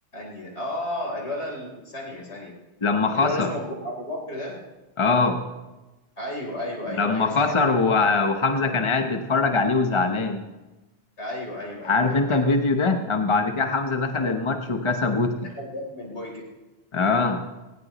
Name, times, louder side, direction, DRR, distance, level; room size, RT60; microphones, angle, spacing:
voice 1, 0.1-2.5 3.1-4.6 6.2-8.0 11.2-12.2 14.2-14.4 15.4-16.4, left 1 dB, 65° left, -2 dB, 4.0 m, -33 dB
voice 2, 2.8-3.5 5.0-5.5 6.9-10.4 11.8-15.4 16.9-17.4, left 3 dB, 30° left, 6 dB, 0.8 m, -22 dB
18.0 x 18.0 x 3.0 m, 1.1 s
omnidirectional pair, 1.2 m